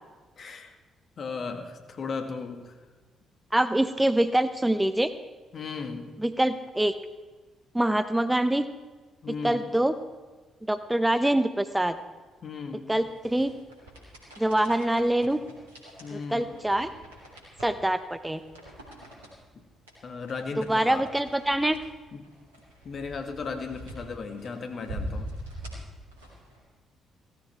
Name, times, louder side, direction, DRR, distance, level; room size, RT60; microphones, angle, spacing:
voice 1, 0.4-0.7 1.2-2.8 5.5-6.1 9.2-9.7 12.4-12.9 16.0-16.5 19.5-19.6 20.0-21.1 22.1-22.3 22.8-25.3, left 4 dB, 50° left, 6 dB, 2.0 m, -36 dB
voice 2, 3.5-5.1 6.2-6.9 7.7-8.7 9.4-9.9 10.7-12.0 12.9-13.5 14.4-15.4 16.1-16.9 17.6-18.4 20.6-21.8, right 1 dB, 10° right, 11 dB, 0.8 m, -24 dB
sound 1, 12.9-26.6, right 1 dB, 85° right, 3.3 m, -44 dB
16.5 x 14.5 x 4.6 m, 1.3 s
figure-of-eight pair, 45°, 0 cm